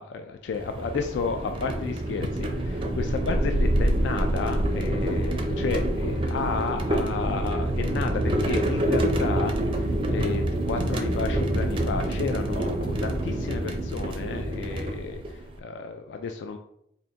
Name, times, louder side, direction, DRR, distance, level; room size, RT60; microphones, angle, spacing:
voice 1, 0.0-15.2 15.6-16.6, left 5 dB, 75° left, 6 dB, 0.3 m, -32 dB
sound 1, 0.5-15.5, right 1 dB, 30° right, 0.4 m, -26 dB
3.9 x 2.6 x 3.5 m, 0.73 s
head